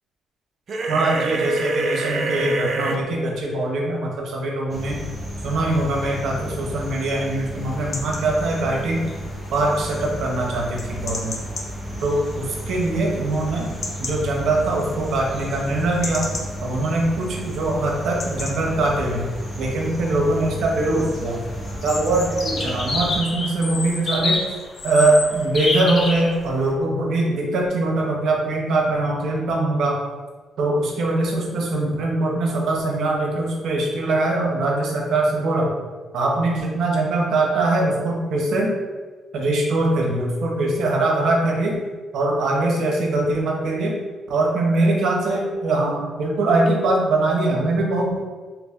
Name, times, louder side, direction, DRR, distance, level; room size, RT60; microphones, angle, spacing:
sound 1, 0.7-3.0, right 3 dB, 55° right, 0.4 m, -25 dB
voice 1, 0.9-5.0 5.4-9.0 9.5-11.3 12.0-13.7 14.0-16.3 16.6-19.3 19.6-21.4 21.8-24.4 24.8-30.0 30.6-35.7 36.1-38.7 39.3-41.8 42.1-43.9 44.3-48.2, right 2 dB, 70° right, -1 dB, 0.8 m, -22 dB
sound 2, 4.7-23.2, equal, 15° right, 0.7 m, -33 dB
sound 3, 7.6-26.7, left 2 dB, 50° left, 0.6 m, -32 dB
3.0 x 2.5 x 3.5 m, 1.4 s
cardioid pair, 90°, 0 cm